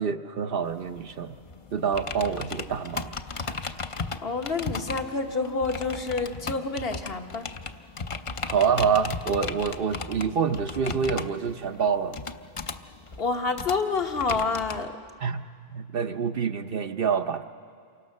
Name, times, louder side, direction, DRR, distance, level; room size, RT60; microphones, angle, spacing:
voice 1, 0.0-1.4 1.7-3.1 3.5-3.6 8.4-12.2 15.2-15.4 15.7-17.4, right 6 dB, 65° right, 8 dB, 1.0 m, -27 dB
sound 1, 0.7-14.8, left 4 dB, 35° left, 0.6 m, -36 dB
voice 2, 4.2-7.5 13.2-15.0, left 4 dB, 65° left, 4 dB, 1.5 m, -28 dB
28.0 x 24.0 x 6.5 m, 2.2 s
omnidirectional pair, 1.1 m